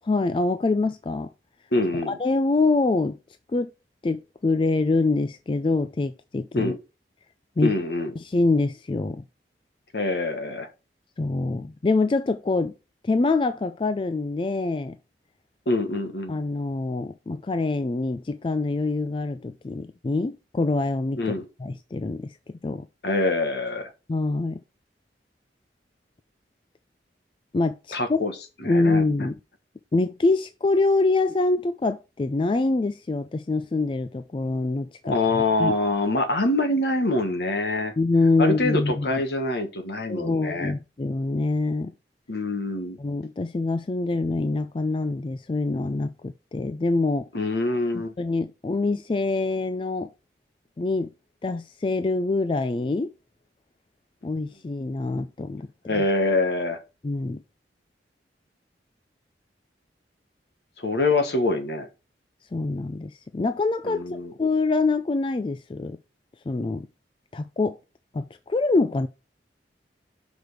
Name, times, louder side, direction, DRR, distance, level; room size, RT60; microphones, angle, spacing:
voice 1, 0.1-1.3 2.1-3.2 3.5-3.7 4.0-6.7 7.6-7.7 8.2-9.2 11.2-12.7 13.0-15.0 16.3-21.3 21.6-22.9 24.1-24.6 27.5-28.2 28.6-29.4 29.9-35.7 38.0-39.2 40.1-41.9 43.0-47.3 47.9-50.1 50.8-51.1 51.4-53.1 54.2-56.0 57.0-57.4 62.5-64.0 64.4-66.0 66.5-66.9 67.3-67.8 68.1-69.1, left 3 dB, 30° left, 0.3 m, -25 dB
voice 2, 1.7-2.2 6.5-6.8 7.6-8.1 9.9-10.7 15.7-16.4 21.2-21.5 23.0-23.9 27.9-28.3 28.6-29.0 35.0-37.9 38.4-40.7 42.3-43.0 47.3-48.1 55.9-56.8 60.8-61.9 63.8-64.3, left 2 dB, 65° left, 1.3 m, -25 dB
6.1 x 5.1 x 4.8 m
head